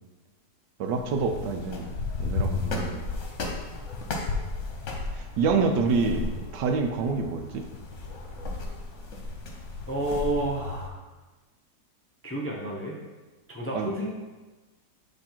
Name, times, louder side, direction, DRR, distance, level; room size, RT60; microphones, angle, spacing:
voice 1, 0.8-3.0 5.2-7.7 13.7-13.9, right 4 dB, 90° right, 5 dB, 1.3 m, -27 dB
sound 1, 0.9-10.9, left 3 dB, 50° left, 1.1 m, -34 dB
voice 2, 9.9-10.9 12.2-13.0 13.5-14.1, right 1 dB, 20° left, -3 dB, 0.4 m, -30 dB
7.9 x 3.3 x 4.4 m, 1.2 s
omnidirectional pair, 1.8 m